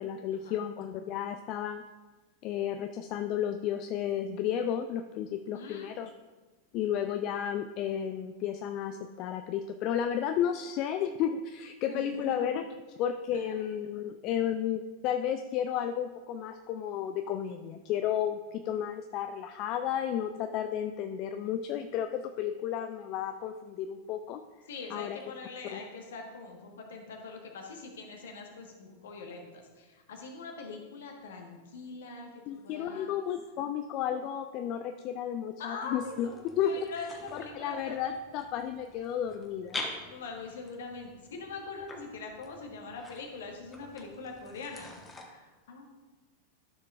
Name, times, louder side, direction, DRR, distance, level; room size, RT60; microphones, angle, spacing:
voice 1, 0.0-1.8 2.4-6.1 6.7-12.6 13.0-24.4 24.9-25.2 25.7-25.8 32.5-36.3 36.6-36.8 37.3-39.8, left 9 dB, 40° left, 8 dB, 0.3 m, -32 dB
voice 2, 5.5-5.9 11.9-12.3 24.7-33.1 35.6-38.0 40.0-45.9, left 4 dB, 60° left, 2 dB, 1.3 m, -43 dB
sound 1, 36.0-45.2, left 2 dB, 15° left, 1.2 m, -46 dB
12.5 x 6.5 x 2.4 m, 1.3 s
figure-of-eight pair, 90°, 0 cm